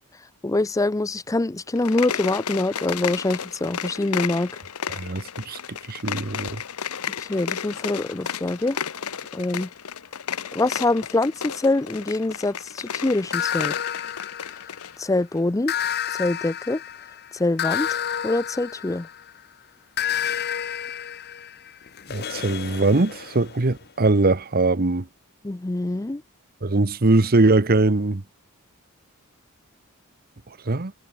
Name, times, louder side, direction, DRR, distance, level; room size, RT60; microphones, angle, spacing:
voice 1, 0.4-4.5 7.2-8.8 9.3-9.7 10.5-13.7 15.0-15.7 16.2-16.8 17.4-17.9 18.2-19.1 25.4-26.2, left 2 dB, 15° left, 0.5 m, -24 dB
sound 1, 1.7-15.0, left 8 dB, 85° left, 0.9 m, -33 dB
voice 2, 4.9-6.6 22.1-25.1 26.6-28.2 30.7-30.9, right 2 dB, 45° right, 1.0 m, -21 dB
sound 2, 13.3-15.0 15.7-19.4 20.0-23.7, left 9 dB, 50° left, 0.8 m, -30 dB
head